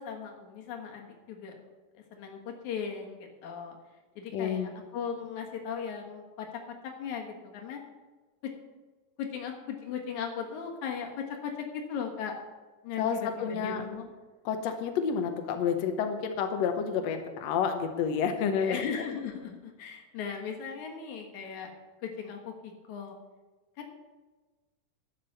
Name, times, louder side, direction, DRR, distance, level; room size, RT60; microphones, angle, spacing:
voice 1, 0.0-1.6 2.1-3.8 4.2-6.5 7.0-7.8 8.4-8.5 9.2-12.3 12.8-14.1 18.6-21.7 22.0-23.2 23.8-23.9, left 7 dB, 60° left, 2 dB, 2.7 m, -37 dB
voice 2, 4.3-4.7 13.0-13.8 14.4-18.8, left 7 dB, 80° left, 6 dB, 1.5 m, -29 dB
12.0 x 8.8 x 6.7 m, 1.3 s
omnidirectional pair, 4.4 m